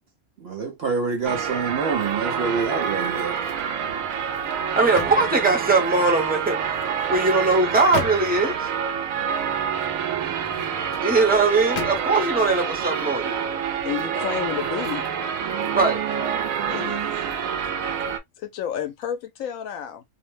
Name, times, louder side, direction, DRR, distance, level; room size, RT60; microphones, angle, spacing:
voice 1, 0.4-3.4, right 5 dB, 60° right, 0.7 m, -27 dB
sound 1, 1.2-18.2, right 7 dB, 85° right, 1.0 m, -27 dB
sound 2, 3.0-3.7 4.1-6.1 6.8-8.6 10.3-11.1 11.7-12.3 12.8-13.0, left 6 dB, 65° left, 0.8 m, -37 dB
voice 2, 4.7-6.6 7.1-8.7 11.0-13.4 15.7-16.0, right 3 dB, 10° right, 0.7 m, -20 dB
voice 3, 13.8-15.1 16.7-17.1 18.4-20.0, left 10 dB, 90° left, 1.0 m, -30 dB
2.7 x 2.0 x 3.0 m
omnidirectional pair, 1.4 m